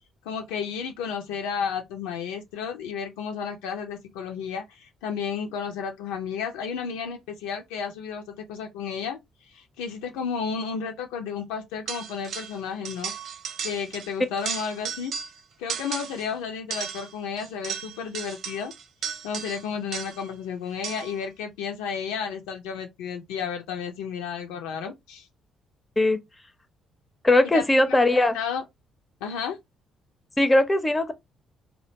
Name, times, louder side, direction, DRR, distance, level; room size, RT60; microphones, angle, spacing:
voice 1, 0.2-9.2 9.5-13.1 13.6-15.1 15.6-18.7 19.2-25.3 27.5-28.6 29.2-29.6, left 6 dB, 70° left, 0.4 m, -32 dB
sound 1, 11.9-12.6 12.8-14.1 14.4-15.4 15.7-16.3 16.7-20.3 20.8-21.2, right 7 dB, 55° right, 0.4 m, -35 dB
voice 2, 27.2-28.4 30.4-31.1, left 2 dB, 20° left, 0.5 m, -20 dB
2.4 x 2.1 x 2.7 m
figure-of-eight pair, 45°, 0 cm